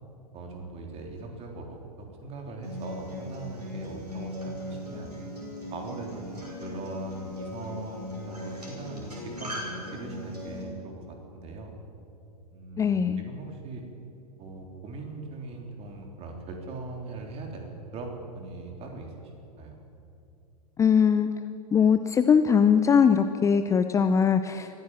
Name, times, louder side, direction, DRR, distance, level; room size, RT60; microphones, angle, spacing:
voice 1, 0.3-5.1 5.7-11.8 12.5-13.8 14.4-19.3 19.6-19.8, right 3 dB, 30° right, 2 dB, 3.8 m, -40 dB
Acoustic guitar, 2.6-10.6, left 1 dB, 80° right, 6.2 m, -38 dB
voice 2, 12.8-13.2 20.8-21.3 21.7-24.8, left 7 dB, 15° left, 10 dB, 0.6 m, -21 dB
23.0 x 15.0 x 7.8 m, 2.6 s
figure-of-eight pair, 95°, 20 cm